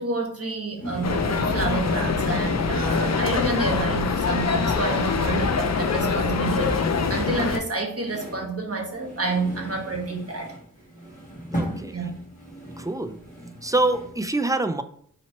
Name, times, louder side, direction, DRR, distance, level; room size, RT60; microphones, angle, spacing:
voice 1, 0.0-10.5 11.9-12.2, right 3 dB, 45° right, 2 dB, 1.1 m, -29 dB
sound 1, 0.8-14.3, right 1 dB, 25° left, 1.8 m, -38 dB
sound 2, 1.0-7.6, left 5 dB, 55° left, 0.5 m, -24 dB
voice 2, 11.5-12.0 12.8-13.2 13.6-14.8, right 2 dB, 10° right, 10 dB, 0.4 m, -25 dB
4.0 x 3.0 x 4.3 m, 0.62 s
wide cardioid pair, 55°, 33 cm